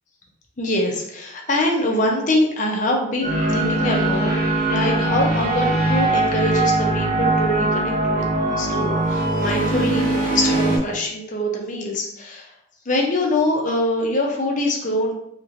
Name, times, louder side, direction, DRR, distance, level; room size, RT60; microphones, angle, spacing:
voice 1, 0.6-8.2 8.6-12.5 12.9-15.1, left 1 dB, 40° left, 0 dB, 0.6 m, -24 dB
sound 1, 3.2-10.8, right 2 dB, 45° right, 0.7 m, -21 dB
2.9 x 2.9 x 2.5 m, 0.74 s
head